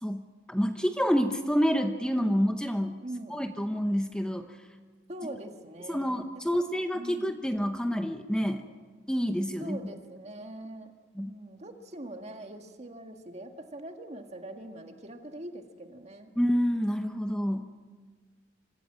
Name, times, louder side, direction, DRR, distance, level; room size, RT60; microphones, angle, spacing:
voice 1, 0.0-3.0 3.3-4.6 5.9-8.6 9.1-9.8 11.1-11.3 16.4-17.7, equal, 5° left, 6 dB, 0.8 m, -28 dB
voice 2, 3.0-3.4 5.1-6.6 6.9-7.3 8.6-8.8 9.6-10.9 11.2-16.3, right 1 dB, 35° right, 5 dB, 1.8 m, -43 dB
25.5 x 15.5 x 7.5 m, 1.5 s
head